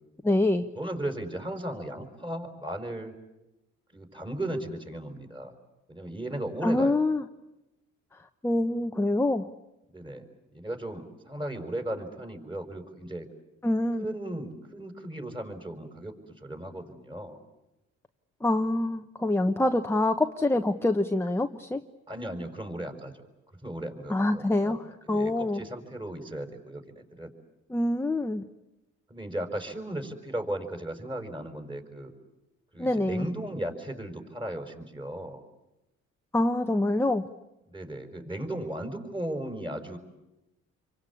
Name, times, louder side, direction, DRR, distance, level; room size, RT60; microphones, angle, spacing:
voice 1, 0.2-0.6 6.6-7.3 8.4-9.5 13.6-14.0 18.4-21.8 24.1-25.6 27.7-28.5 32.8-33.3 36.3-37.3, left 2 dB, 10° left, 6 dB, 1.0 m, -25 dB
voice 2, 0.8-3.1 3.9-5.5 5.9-7.0 9.9-10.2 10.5-13.3 14.0-17.4 22.1-23.1 23.6-24.8 25.1-27.3 29.1-32.1 32.7-35.4 37.7-40.0, right 1 dB, 15° right, 5 dB, 5.4 m, -36 dB
28.0 x 24.0 x 8.5 m, 0.94 s
cardioid pair, 90°, 30 cm